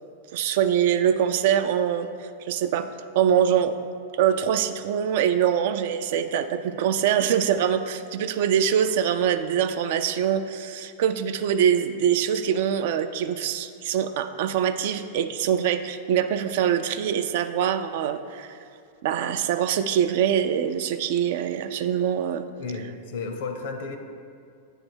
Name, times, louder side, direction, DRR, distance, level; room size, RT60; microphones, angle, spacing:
voice 1, 0.3-2.9 3.2-3.8 4.2-18.5 19.0-22.4, right 9 dB, 65° right, 9 dB, 0.3 m, -24 dB
voice 2, 22.6-24.0, left 4 dB, 65° left, 6 dB, 0.7 m, -33 dB
7.9 x 3.3 x 4.4 m, 2.3 s
hypercardioid pair, 120°, 0 cm